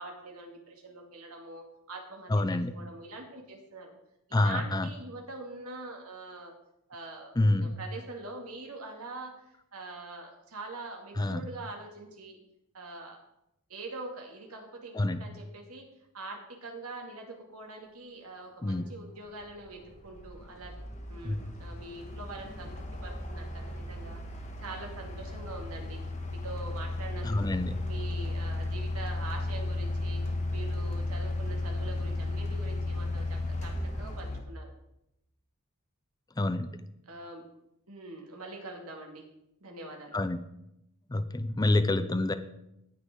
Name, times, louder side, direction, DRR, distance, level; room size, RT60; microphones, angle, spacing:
voice 1, 0.0-3.9 4.3-6.5 6.9-7.3 7.6-9.3 9.7-12.4 12.7-13.2 13.7-15.9 16.1-20.7 21.1-22.7 23.0-24.2 24.6-26.0 26.4-30.2 30.5-34.7 37.1-37.4 37.9-39.2 39.6-40.2, right 2 dB, 85° right, 1 dB, 2.4 m, -44 dB
voice 2, 2.3-2.7 4.3-4.9 7.4-7.7 11.2-11.5 14.9-15.2 18.6-18.9 21.2-21.4 27.2-27.8 36.4-36.7 40.1-40.4 41.1-42.3, left 2 dB, 20° left, 12 dB, 0.5 m, -27 dB
sound 1, 18.6-18.7 19.3-34.4, left 2 dB, 35° left, 1.5 m, -35 dB
18.0 x 6.4 x 3.8 m, 0.83 s
head